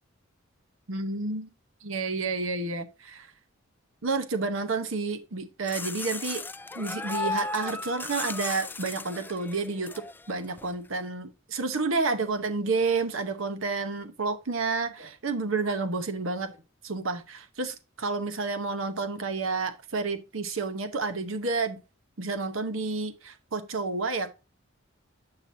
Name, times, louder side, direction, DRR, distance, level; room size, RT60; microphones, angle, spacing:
voice 1, 0.9-1.5 1.8-3.3 4.0-6.4 6.8-9.9 10.3-16.5 16.8-21.8 22.2-24.3, right 3 dB, 70° right, 0.9 m, -30 dB
sound 1, 5.7-10.7, left 3 dB, 10° left, 0.3 m, -36 dB
8.7 x 5.8 x 2.7 m
head